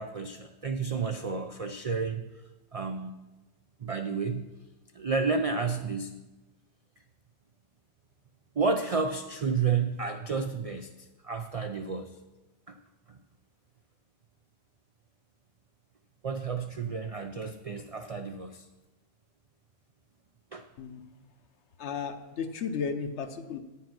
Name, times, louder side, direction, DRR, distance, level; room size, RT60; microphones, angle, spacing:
voice 1, 0.0-2.2 2.7-3.1 3.8-4.5 4.9-6.2 8.6-10.9 11.2-12.2 12.7-12.8 13.1-13.2 16.2-18.7 20.5-20.6, right 5 dB, 60° right, 7 dB, 0.3 m, -31 dB
voice 2, 21.8-23.6, left 6 dB, 65° left, 9 dB, 1.0 m, -34 dB
9.4 x 7.3 x 5.9 m, 1.1 s
omnidirectional pair, 1.3 m